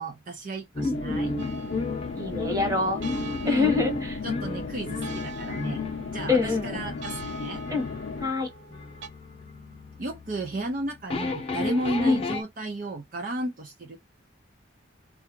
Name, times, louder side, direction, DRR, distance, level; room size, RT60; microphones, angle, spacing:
voice 1, 0.0-1.3 3.4-3.8 4.2-5.9 6.1-7.6 10.0-14.0, right 1 dB, 40° right, 0.5 m, -33 dB
sound 1, 0.8-12.4, left 3 dB, 30° left, 0.8 m, -34 dB
voice 2, 0.8-1.1 2.1-3.0 3.4-4.2 4.6-4.7 6.3-6.8 7.7-7.9 8.2-8.5 12.0-12.2, left 3 dB, 20° right, 1.2 m, -25 dB
sound 2, 0.9-8.3, left 5 dB, 70° left, 0.4 m, -36 dB
sound 3, 1.4-9.1, right 4 dB, 75° right, 0.8 m, -45 dB
4.6 x 2.3 x 2.9 m
head